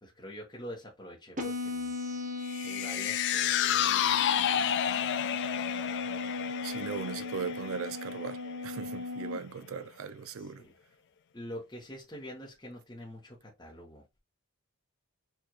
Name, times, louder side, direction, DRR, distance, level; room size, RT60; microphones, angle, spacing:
voice 1, 0.0-1.9 2.6-4.7 10.4-10.7 11.3-14.0, equal, 20° left, 0.9 m, -46 dB
sound 1, 1.4-9.4, left 3 dB, 35° right, 1.2 m, -37 dB
sound 2, 2.5-8.9 9.3-9.4, left 10 dB, 50° left, 0.3 m, -31 dB
voice 2, 6.6-10.6, right 5 dB, 65° right, 0.5 m, -38 dB
4.6 x 2.4 x 2.8 m
head